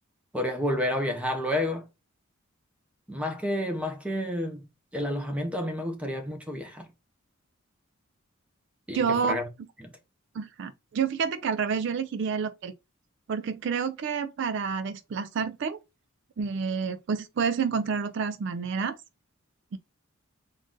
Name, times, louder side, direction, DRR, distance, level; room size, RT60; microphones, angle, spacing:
voice 1, 0.3-1.8 3.1-4.6 4.9-6.9 8.9-9.4 9.8-9.9, left 1 dB, 5° right, 0.7 m, -30 dB
voice 2, 8.9-9.4 10.3-12.7 13.3-15.8 16.4-19.0 19.7-19.8, right 6 dB, 55° right, 0.3 m, -29 dB
3.8 x 2.5 x 3.6 m
head